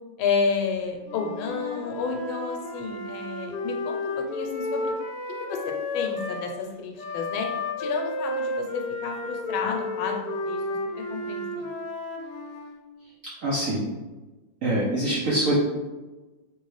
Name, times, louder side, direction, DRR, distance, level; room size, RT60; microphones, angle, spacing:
voice 1, 0.2-4.9 5.4-7.5 7.8-10.2 10.5-10.6 11.0-11.7, left 5 dB, 90° left, 2 dB, 1.4 m, -30 dB
Wind instrument woodwind instrument, 1.0-6.5 7.0-12.8, left 2 dB, 70° left, 1.0 m, -32 dB
voice 2, 13.4-13.9 14.6-15.6, right 1 dB, 70° right, -7 dB, 0.7 m, -24 dB
3.1 x 3.0 x 3.1 m, 1.2 s
omnidirectional pair, 2.2 m